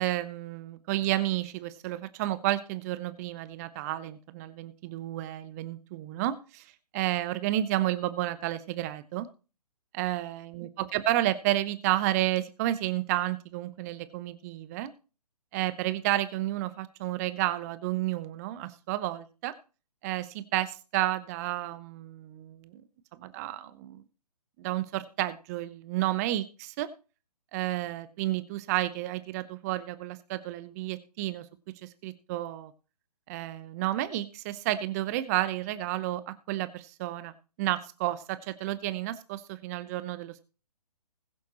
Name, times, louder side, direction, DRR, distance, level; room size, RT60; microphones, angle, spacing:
voice 1, 0.0-6.6 6.9-9.3 9.9-14.9 15.5-19.5 20.0-22.8 23.1-24.0 24.6-26.9 27.5-31.5 31.8-32.7 33.3-37.3 37.6-40.4, right 15 dB, 25° right, 14 dB, 0.9 m, -31 dB
20.5 x 6.9 x 3.0 m, 0.35 s
figure-of-eight pair, 135°, 20 cm